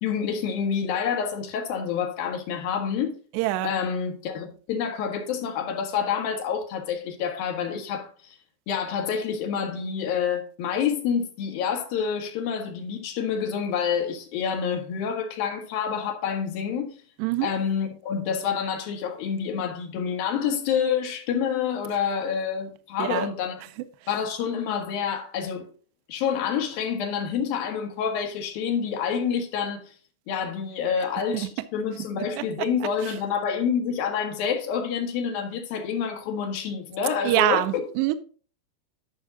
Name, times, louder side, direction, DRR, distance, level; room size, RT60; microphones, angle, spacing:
voice 1, 0.0-3.1 3.6-8.1 8.7-17.0 17.4-23.6 24.1-25.7 26.1-29.9 30.3-37.9, left 7 dB, 65° left, 2.8 m, -28 dB
voice 2, 3.3-3.7 17.2-17.5 23.0-23.3 31.3-31.5 37.2-38.2, right 15 dB, 85° right, 2.6 m, -24 dB
12.5 x 5.4 x 3.8 m
omnidirectional pair, 5.3 m